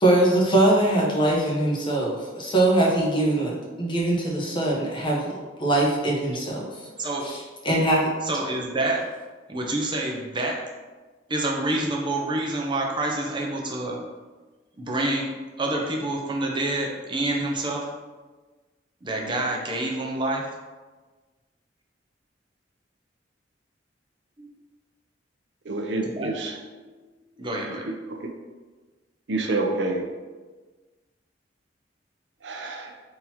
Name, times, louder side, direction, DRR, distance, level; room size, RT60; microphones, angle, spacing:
voice 1, 0.0-6.7 7.2-8.1, right 1 dB, 30° left, -3 dB, 1.0 m, -22 dB
voice 2, 8.2-9.1 9.5-10.6 11.3-14.1 14.8-15.3 15.6-18.0 19.0-20.4 24.4-24.5 26.0-26.3 26.6-27.1 27.4-27.9, right 2 dB, 25° right, -1 dB, 0.7 m, -27 dB
voice 3, 25.7-26.6 29.3-30.0 32.4-32.9, right 2 dB, 85° right, 2 dB, 0.6 m, -27 dB
3.8 x 2.9 x 4.3 m, 1.3 s
head